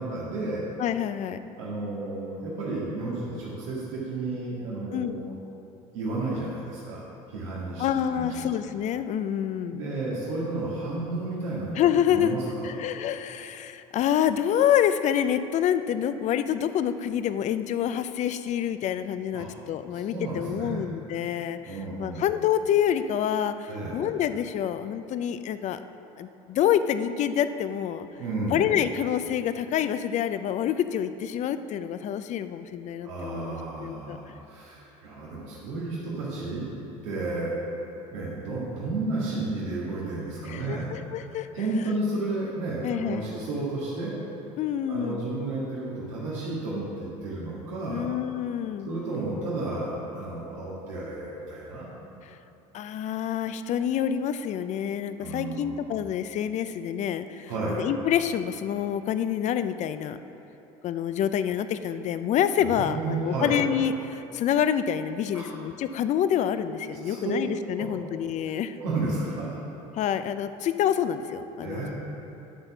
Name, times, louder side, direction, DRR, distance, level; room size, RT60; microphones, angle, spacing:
voice 1, 0.0-0.6 1.6-5.4 5.9-8.5 9.7-12.7 19.3-19.5 20.1-20.8 21.6-22.2 23.7-24.0 28.2-28.7 33.0-36.7 37.0-37.5 38.1-40.9 41.5-44.1 44.9-48.1 48.8-51.9 55.2-55.8 57.5-57.8 62.6-63.6 65.3-65.5 67.0-67.4 67.8-67.9 68.7-69.6 71.6-71.9, right 2 dB, 85° right, -7 dB, 1.7 m, -32 dB
voice 2, 0.8-1.4 4.9-5.2 7.8-9.8 11.8-12.3 12.6-25.8 26.2-28.1 28.5-34.2 40.5-41.5 42.8-43.3 44.6-45.2 47.9-48.9 52.7-57.5 57.8-60.2 60.8-68.8 69.9-71.9, left 9 dB, 45° left, 11 dB, 0.5 m, -27 dB
10.0 x 4.2 x 5.9 m, 3.0 s
supercardioid pair, 90°, 16 cm